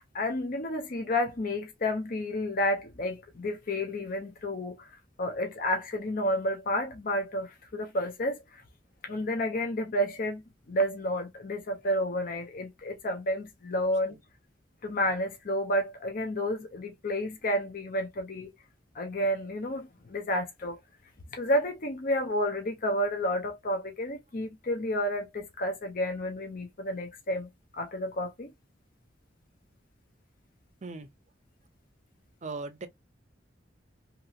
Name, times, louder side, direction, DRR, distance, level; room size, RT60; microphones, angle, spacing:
voice 1, 0.1-4.9 5.2-8.4 9.0-10.4 10.7-14.2 14.8-18.5 18.9-20.8 21.3-27.5 27.8-28.5, left 1 dB, 50° left, 0.7 m, -30 dB
voice 2, 32.4-32.9, right 3 dB, 40° right, 0.5 m, -38 dB
2.9 x 2.8 x 2.4 m
head